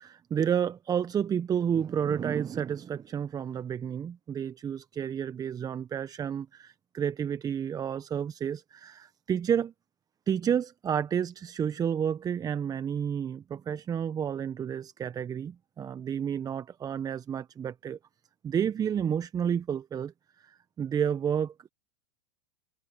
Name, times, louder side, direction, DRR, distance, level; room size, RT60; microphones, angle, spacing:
voice 1, 0.0-9.7 10.3-18.0 18.4-21.7, right 8 dB, 25° right, 1.0 m, -30 dB
hypercardioid pair, 95°, 15 cm